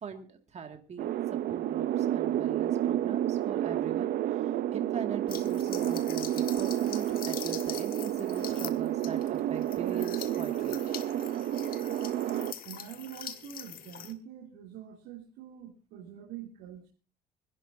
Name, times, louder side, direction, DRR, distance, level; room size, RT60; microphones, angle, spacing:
voice 1, 0.0-10.8, right 6 dB, 40° right, 5 dB, 2.1 m, -41 dB
sound 1, 1.0-12.5, right 12 dB, 65° right, 0.6 m, -30 dB
sound 2, 5.3-14.1, left 9 dB, 60° left, 1.4 m, -43 dB
voice 2, 12.3-16.9, right 10 dB, 90° right, -3 dB, 2.8 m, -45 dB
25.0 x 11.0 x 2.7 m, 0.37 s
cardioid pair, 110°, 17 cm